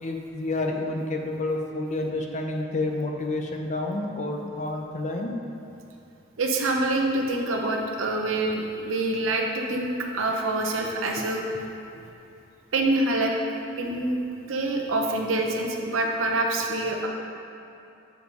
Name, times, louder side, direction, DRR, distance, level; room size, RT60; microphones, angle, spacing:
voice 1, 0.0-5.3 10.8-10.9 13.8-14.0, left 2 dB, 35° left, 2 dB, 0.5 m, -29 dB
voice 2, 6.4-11.4 12.7-13.3 13.8-14.2 14.5-17.1, right 2 dB, 85° right, 1 dB, 0.7 m, -26 dB
7.1 x 3.1 x 5.2 m, 2.7 s
head